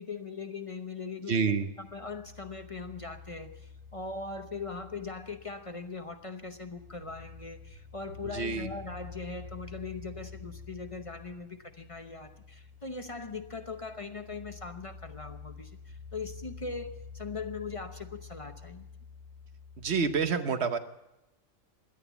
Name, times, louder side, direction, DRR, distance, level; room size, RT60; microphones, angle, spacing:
voice 1, 0.0-1.3 1.8-18.9, left 4 dB, 30° left, 8 dB, 0.7 m, -40 dB
voice 2, 1.3-1.7 8.2-8.7 19.8-20.8, right 5 dB, 55° right, 10 dB, 1.1 m, -28 dB
sound 1, 1.8-20.3, left 5 dB, 80° right, 2.1 m, -49 dB
17.5 x 12.0 x 7.0 m, 0.93 s
omnidirectional pair, 1.4 m